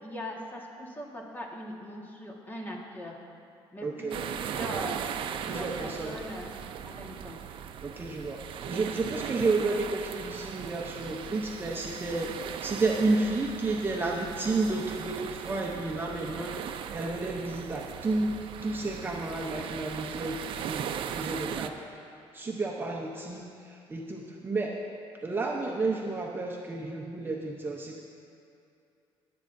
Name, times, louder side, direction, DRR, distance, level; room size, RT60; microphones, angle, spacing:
voice 1, 0.0-3.1 3.7-5.0 5.4-6.5 6.8-7.4, left 1 dB, 20° left, -1 dB, 1.7 m, -40 dB
voice 2, 3.8-4.2 5.4-6.2 7.8-16.5 16.9-18.4 18.6-22.0 22.3-24.7 25.2-28.0, right 3 dB, 20° right, -1 dB, 0.8 m, -31 dB
sound 1, 4.1-21.7, right 8 dB, 60° right, 0.5 m, -38 dB
22.0 x 8.6 x 2.7 m, 2.5 s
cardioid pair, 110°, 10 cm